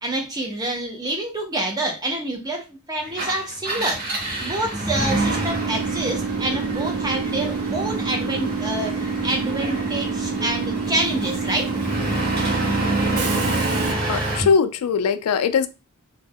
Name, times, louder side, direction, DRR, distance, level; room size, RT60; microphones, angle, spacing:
voice 1, 0.0-4.0 4.4-11.7, right 1 dB, 20° right, 0.5 m, -27 dB
Engine, 3.1-14.5, right 1 dB, 45° right, 0.9 m, -27 dB
Train / Subway metro underground, 5.1-13.9, right 5 dB, 80° right, 0.4 m, -28 dB
voice 2, 14.1-15.7, left 6 dB, 90° left, 0.3 m, -20 dB
2.3 x 2.1 x 3.4 m
head